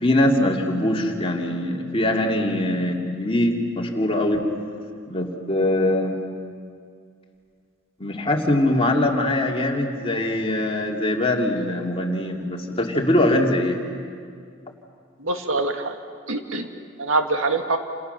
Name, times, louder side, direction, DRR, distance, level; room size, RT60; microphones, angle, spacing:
voice 1, 0.0-4.4 5.1-6.2 8.0-13.8, left 1 dB, 30° left, 0 dB, 2.8 m, -22 dB
voice 2, 15.2-15.9 16.3-16.7 17.0-17.8, right 2 dB, 75° right, 5 dB, 2.0 m, -24 dB
28.5 x 28.0 x 6.9 m, 2.2 s
head